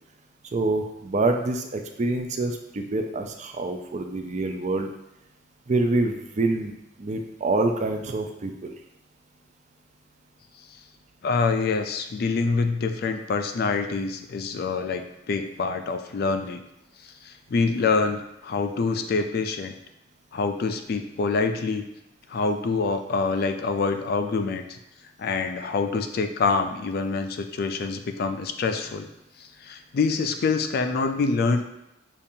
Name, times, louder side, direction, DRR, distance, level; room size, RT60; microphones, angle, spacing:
voice 1, 0.5-4.9 5.7-6.7 7.0-8.7, right 2 dB, 35° right, 4 dB, 0.4 m, -26 dB
voice 2, 11.2-16.6 17.0-19.7 20.3-21.8 22.3-24.8 25.2-29.1 29.4-31.6, left 4 dB, 50° left, 7 dB, 0.3 m, -26 dB
6.8 x 2.5 x 2.7 m, 0.87 s
head